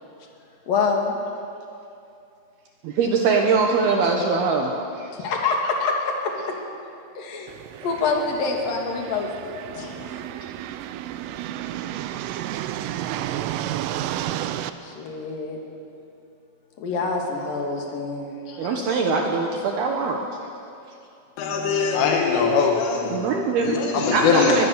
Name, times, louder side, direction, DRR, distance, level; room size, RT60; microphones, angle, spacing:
voice 1, 0.7-1.2 5.1-6.6 7.2-7.5 7.8-10.2 14.8-15.6 16.8-19.0, left 4 dB, 50° left, 1 dB, 3.6 m, -26 dB
voice 2, 2.8-5.1 18.6-20.2 23.1-24.7, right 4 dB, 70° right, 2 dB, 2.7 m, -22 dB
sound 1, 7.5-14.7, right 12 dB, 90° right, 3.3 m, -31 dB
voice 3, 21.4-23.3 23.6-24.7, left 5 dB, 85° left, 1 dB, 4.2 m, -21 dB
21.0 x 21.0 x 6.8 m, 2.6 s
omnidirectional pair, 5.6 m